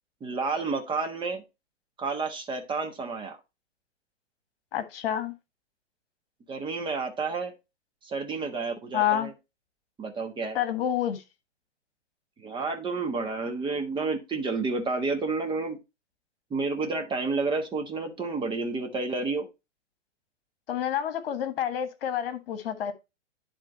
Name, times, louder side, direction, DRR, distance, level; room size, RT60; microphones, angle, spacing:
voice 1, 0.2-1.4 2.0-3.4 6.5-7.5 8.0-9.3 10.0-10.6 12.4-15.8 16.5-19.5, right 3 dB, 15° right, 1.3 m, -30 dB
voice 2, 4.7-5.3 8.9-9.3 10.5-11.2 20.7-22.9, left 10 dB, 55° left, 1.5 m, -28 dB
10.5 x 3.6 x 3.9 m
hypercardioid pair, 120°, 36 cm